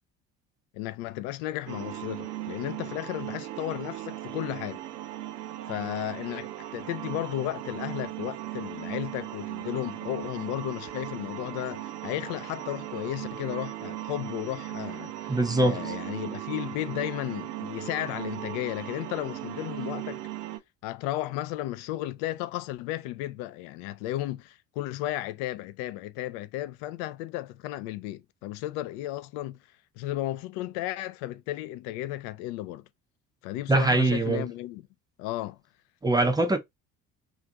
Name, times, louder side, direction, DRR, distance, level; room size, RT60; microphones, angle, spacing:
voice 1, 0.7-4.8 5.7-20.2 20.8-29.6 30.0-32.8 33.4-34.8 35.2-35.6, left 15 dB, 55° left, 0.5 m, -34 dB
sound 1, 1.7-20.6, right 15 dB, 70° right, 0.6 m, -37 dB
voice 2, 15.3-15.9 33.7-34.4 36.0-36.6, right 2 dB, 10° right, 0.4 m, -23 dB
2.5 x 2.4 x 3.8 m
figure-of-eight pair, 55°, 49 cm